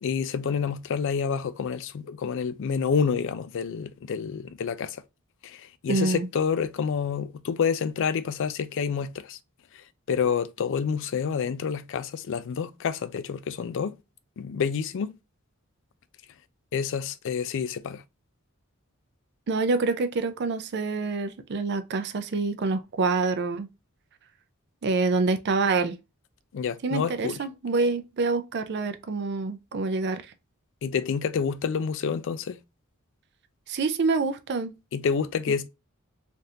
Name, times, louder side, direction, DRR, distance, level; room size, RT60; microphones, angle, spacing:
voice 1, 0.0-5.0 5.4-9.4 10.1-14.0 14.4-15.2 16.7-18.0 26.5-27.4 30.8-32.6 34.9-35.7, left 6 dB, 60° left, 0.4 m, -28 dB
voice 2, 5.9-6.3 19.5-23.7 24.8-26.0 26.8-30.3 33.7-34.8, right 3 dB, 50° right, 0.4 m, -26 dB
3.4 x 2.5 x 2.7 m
head